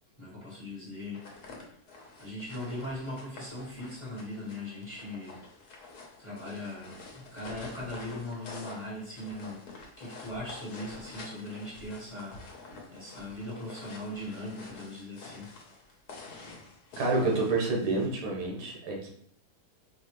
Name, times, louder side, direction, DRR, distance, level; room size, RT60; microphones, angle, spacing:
voice 1, 0.2-1.2 2.2-5.4 6.2-15.5, left 1 dB, 20° left, -7 dB, 1.3 m, -40 dB
sound 1, 1.0-18.1, left 3 dB, 75° left, 1.4 m, -48 dB
voice 2, 17.0-19.1, right 3 dB, 90° right, -1 dB, 1.6 m, -28 dB
4.8 x 2.7 x 3.0 m, 0.66 s
omnidirectional pair, 1.7 m